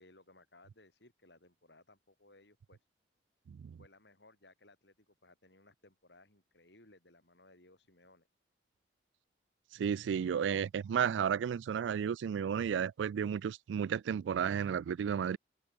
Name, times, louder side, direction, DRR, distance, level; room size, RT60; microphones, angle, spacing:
voice 1, 0.0-2.8 3.8-8.3, left 2 dB, 70° left, 6.3 m, -62 dB
voice 2, 3.5-3.8 9.7-15.4, right 7 dB, 90° right, 0.3 m, -33 dB
head